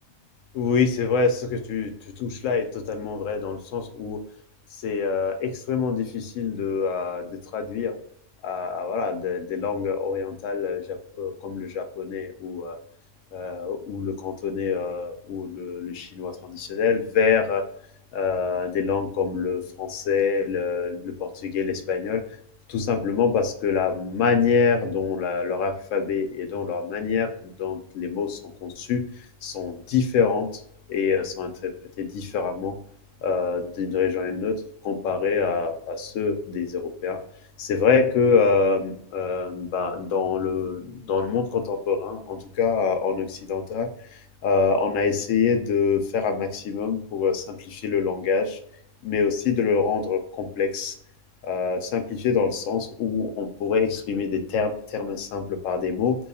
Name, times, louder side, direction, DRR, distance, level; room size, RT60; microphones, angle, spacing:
voice 1, 0.5-1.9 2.2-4.2 4.8-7.9 8.4-12.8 13.3-17.6 18.1-22.2 22.7-29.0 29.4-30.6 30.9-32.8 33.2-37.2 37.6-43.9 44.4-48.6 49.0-50.9 51.4-56.2, left 5 dB, 85° left, 6 dB, 1.0 m, -25 dB
2.9 x 2.3 x 4.1 m, 0.66 s
omnidirectional pair, 1.3 m